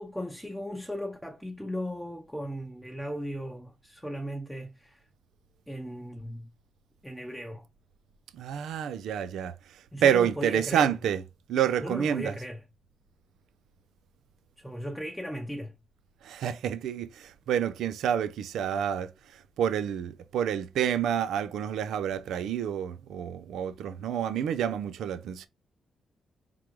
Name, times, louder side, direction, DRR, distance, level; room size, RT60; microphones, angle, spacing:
voice 1, 0.0-5.1 5.7-6.5 7.0-7.7 9.9-11.0 11.8-12.6 14.6-15.8, equal, ahead, 0.7 m, -37 dB
voice 2, 8.4-9.5 10.0-11.2 11.5-12.3 16.2-19.1 19.6-25.5, right 9 dB, 90° right, 0.4 m, -28 dB
4.7 x 3.7 x 3.0 m
cardioid pair, 105°, 0 cm